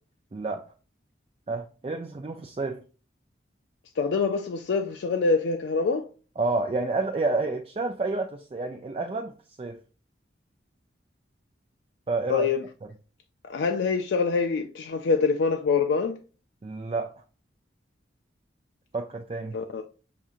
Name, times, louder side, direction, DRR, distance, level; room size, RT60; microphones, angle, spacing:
voice 1, 0.3-0.7 1.5-2.8 6.4-9.8 12.1-12.5 16.6-17.1 18.9-19.6, right 3 dB, 30° right, 0.3 m, -29 dB
voice 2, 4.0-6.0 12.3-12.6 13.5-16.2 19.5-19.8, left 4 dB, 75° left, 0.4 m, -25 dB
5.8 x 2.7 x 2.5 m
head